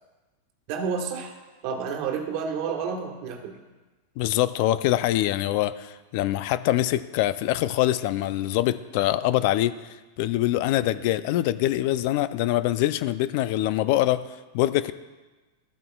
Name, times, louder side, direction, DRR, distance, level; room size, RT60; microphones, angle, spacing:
voice 1, 0.7-1.3 1.6-3.6, right 6 dB, 55° right, 3 dB, 1.4 m, -30 dB
voice 2, 4.2-9.7 10.2-14.2 14.5-14.9, left 14 dB, 55° left, 14 dB, 0.4 m, -24 dB
13.5 x 8.5 x 2.3 m, 1.2 s
hypercardioid pair, 125°, 0 cm